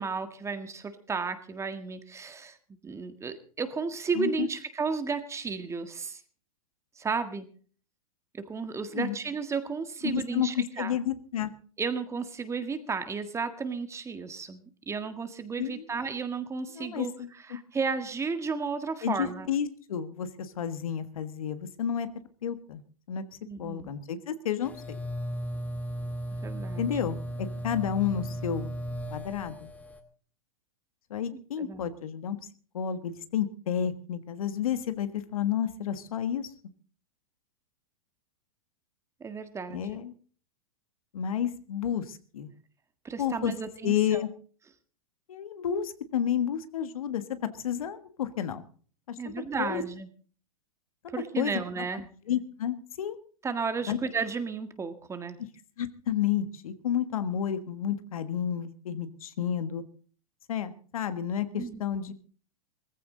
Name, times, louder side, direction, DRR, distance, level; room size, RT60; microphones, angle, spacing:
voice 1, 0.0-2.6 2.8-6.2 7.0-7.5 8.3-11.0 11.8-17.1 17.5-19.5 23.4-23.9 26.4-26.9 31.6-31.9 39.2-40.0 43.1-44.2 49.2-50.1 51.1-52.1 53.4-55.4 61.6-61.8, right 5 dB, 15° right, 9 dB, 1.7 m, -33 dB
voice 2, 4.2-4.5 8.9-9.2 10.0-11.5 15.6-15.9 16.7-17.3 19.0-22.1 22.4-22.8 23.1-23.2 23.6-25.0 26.8-28.7 29.1-29.7 31.1-32.4 32.7-36.5 39.7-40.1 41.1-42.5 43.2-43.5 43.8-44.3 45.3-48.7 49.1-49.8 51.4-51.5 52.3-53.2 53.9-54.0 55.8-59.8 60.5-62.1, left 9 dB, 75° left, 11 dB, 1.6 m, -31 dB
sound 1, 24.7-30.0, equal, 10° left, 2.0 m, -36 dB
18.0 x 15.0 x 3.9 m, 0.43 s
hypercardioid pair, 115°, 18 cm